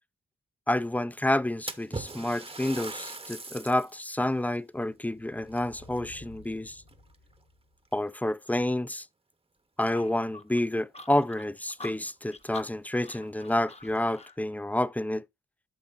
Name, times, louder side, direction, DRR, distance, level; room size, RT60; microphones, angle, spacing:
voice 1, 0.7-6.8 7.9-9.1 9.8-15.2, left 1 dB, 5° left, 0.4 m, -29 dB
Splash splatter, 1.7-4.0 4.5-4.6 5.5-6.5 6.9-7.3 8.1-8.2 8.7-8.8 11.0-11.1 11.4-11.5 12.1-12.2 12.6-12.7 13.4-14.0, right 3 dB, 20° right, 0.8 m, -40 dB
sound 1, 5.0-7.9, left 2 dB, 85° left, 4.8 m, -53 dB
sound 2, 9.8-14.4, left 2 dB, 20° left, 0.8 m, -47 dB
12.0 x 5.4 x 2.5 m
cardioid pair, 50°, 29 cm